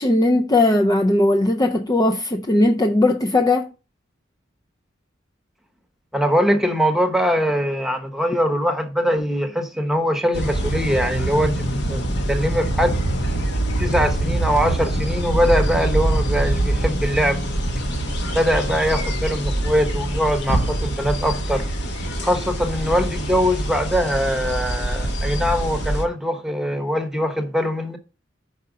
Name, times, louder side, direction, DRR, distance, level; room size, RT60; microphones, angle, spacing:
voice 1, 0.0-3.7, left 2 dB, 20° left, 0.5 m, -18 dB
voice 2, 6.1-12.0 12.3-13.0 13.8-17.4 18.3-21.6 22.2-28.0, equal, ahead, 1.0 m, -22 dB
sound 1, 10.3-26.1, right 1 dB, 60° left, 1.4 m, -24 dB
5.6 x 4.9 x 6.2 m
head